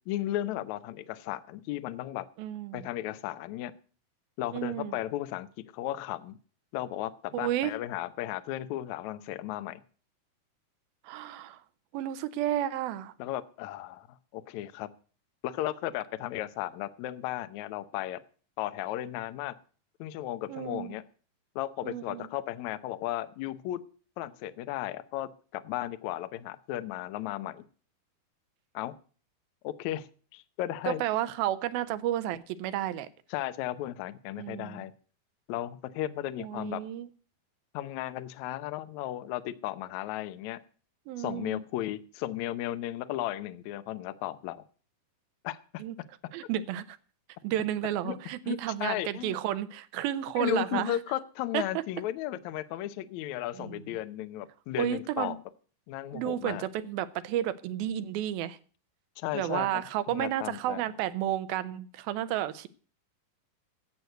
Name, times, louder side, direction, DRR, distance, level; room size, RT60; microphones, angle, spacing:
voice 1, 0.1-2.3 2.7-3.7 4.4-6.4 6.7-9.8 13.2-14.9 15.4-18.2 18.6-19.5 20.0-21.0 21.5-23.8 24.2-27.6 28.7-28.9 29.6-31.0 33.3-34.9 35.5-36.8 37.7-40.6 41.2-44.6 45.4-45.8 48.0-48.1 48.5-49.3 50.4-55.4 55.9-56.6 59.2-60.8, left 14 dB, 80° left, 1.6 m, -35 dB
voice 2, 2.4-2.9 4.5-5.0 7.3-7.7 11.0-11.6 11.9-13.1 20.5-20.9 21.8-22.3 30.9-33.1 34.4-34.9 36.4-37.1 41.1-41.6 45.8-46.0 46.3-47.0 47.4-51.0 51.5-51.6 53.6-53.8 54.8-55.4 56.1-58.6 59.3-62.7, right 12 dB, 80° right, 2.6 m, -32 dB
11.5 x 8.1 x 7.7 m
omnidirectional pair, 4.3 m